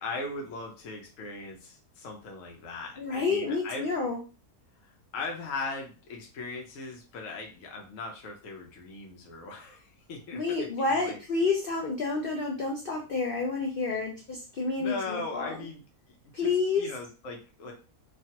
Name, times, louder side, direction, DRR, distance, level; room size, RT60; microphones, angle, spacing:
voice 1, 0.0-3.9 4.8-11.2 14.8-15.8 16.1-16.5 16.8-17.7, left 3 dB, 65° left, 1 dB, 0.9 m, -39 dB
voice 2, 3.0-4.2 10.3-15.6 16.3-16.8, left 4 dB, 80° left, 0 dB, 0.5 m, -29 dB
3.2 x 2.3 x 2.8 m, 0.34 s
omnidirectional pair, 1.6 m